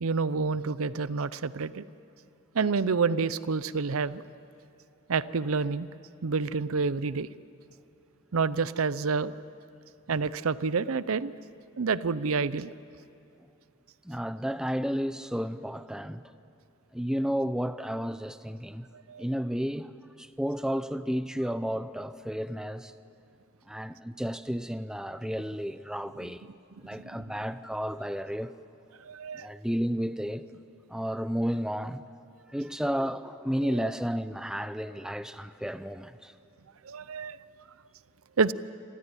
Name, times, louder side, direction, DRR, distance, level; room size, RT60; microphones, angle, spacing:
voice 1, 0.0-1.8 2.5-4.2 5.1-5.9 6.2-7.3 8.3-9.3 10.1-11.3 11.8-12.7 19.1-19.2 29.1-29.5 33.8-33.9 36.8-37.4 38.4-38.5, right 4 dB, 80° right, 0.6 m, -28 dB
voice 2, 14.0-16.2 16.9-18.9 19.2-19.9 20.2-22.9 23.7-26.4 26.8-28.5 29.3-30.5 30.9-32.1 32.5-36.3, equal, 5° right, 0.6 m, -32 dB
26.5 x 14.5 x 9.8 m
head